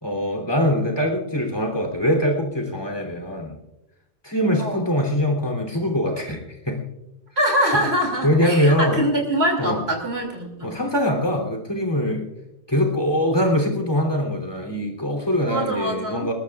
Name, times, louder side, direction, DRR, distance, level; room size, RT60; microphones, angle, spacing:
voice 1, 0.0-3.6 4.2-6.8 8.2-9.0 9.6-9.8 10.6-12.3 12.7-16.3, equal, 25° left, 2 dB, 3.3 m, -22 dB
voice 2, 7.4-10.7 15.4-16.3, equal, 85° right, 1 dB, 3.1 m, -24 dB
21.0 x 20.0 x 2.4 m, 0.92 s
omnidirectional pair, 1.1 m